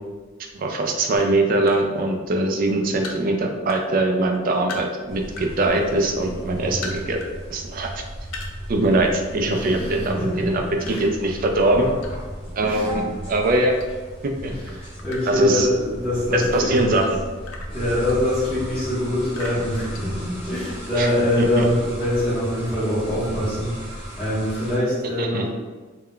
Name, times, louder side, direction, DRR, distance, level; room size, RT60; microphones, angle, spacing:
voice 1, 0.5-7.2 7.5-8.0 8.7-10.1 10.5-10.6 10.9-11.9 12.5-13.8 14.2-14.5 15.3-15.7 16.3-17.1 21.0-21.1 21.6-21.7 25.2-25.4, right 2 dB, 45° right, 3 dB, 0.3 m, -22 dB
sound 1, 1.1-1.8 2.3-3.8 4.1-5.5 5.9-7.3 7.7-7.8 8.2-9.3 9.6-9.8 10.8-12.4 12.9-14.2 14.5-16.1 16.7-18.7 19.3-20.6, left 3 dB, 75° left, 0.4 m, -39 dB
sound 2, 5.1-24.8, equal, 30° left, 0.7 m, -34 dB
voice 2, 9.4-11.1 12.6-12.9 14.5-16.9 17.7-25.5, left 1 dB, 5° left, -14 dB, 0.9 m, -24 dB
2.2 x 2.1 x 3.6 m, 1.4 s
head